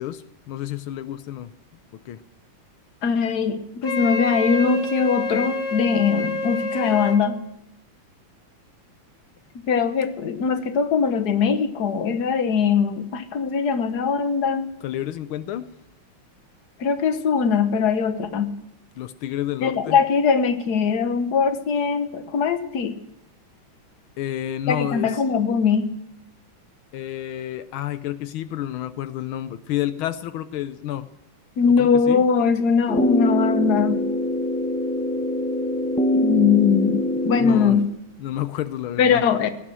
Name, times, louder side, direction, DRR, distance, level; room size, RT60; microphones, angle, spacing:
voice 1, 0.0-1.5 2.0-2.2 14.8-15.7 19.0-20.0 24.2-25.2 26.9-31.1 31.6-32.2 37.4-37.8 38.2-39.2, left 12 dB, 85° left, 13 dB, 1.6 m, -30 dB
voice 2, 3.0-7.4 9.7-14.7 16.8-18.5 19.6-23.0 24.7-25.9 31.6-34.1 36.1-37.9 39.0-39.5, left 6 dB, 55° left, 9 dB, 1.7 m, -21 dB
Wind instrument woodwind instrument, 3.8-7.2, left 3 dB, 40° left, 2.7 m, -28 dB
sound 1, 32.9-37.8, left 1 dB, 5° left, 0.7 m, -23 dB
17.5 x 12.5 x 6.2 m, 0.89 s
omnidirectional pair, 2.2 m